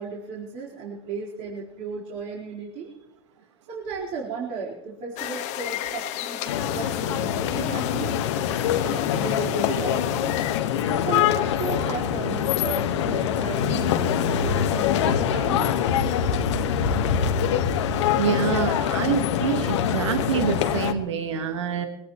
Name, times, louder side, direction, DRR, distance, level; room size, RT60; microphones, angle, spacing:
voice 1, 0.0-2.9 3.7-8.2 8.6-10.3 10.9-15.7, right 5 dB, 50° right, -5 dB, 4.3 m, -35 dB
sound 1, 5.2-10.6, left 13 dB, 50° left, 1.6 m, -34 dB
sound 2, 6.5-20.9, left 8 dB, 80° left, 1.5 m, -24 dB
voice 2, 18.2-21.9, right 7 dB, 85° right, 6 dB, 1.7 m, -26 dB
23.0 x 18.0 x 3.1 m, 0.93 s
hypercardioid pair, 105°, 15 cm